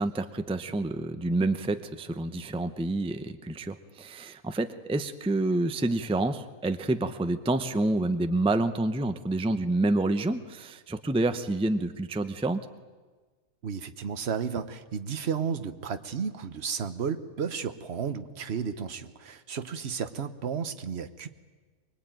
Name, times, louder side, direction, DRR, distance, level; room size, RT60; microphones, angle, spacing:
voice 1, 0.0-12.7, right 2 dB, 5° right, 9 dB, 0.6 m, -28 dB
voice 2, 13.6-21.3, right 6 dB, 50° right, 10 dB, 1.2 m, -33 dB
24.0 x 20.5 x 9.2 m, 1.4 s
omnidirectional pair, 1.5 m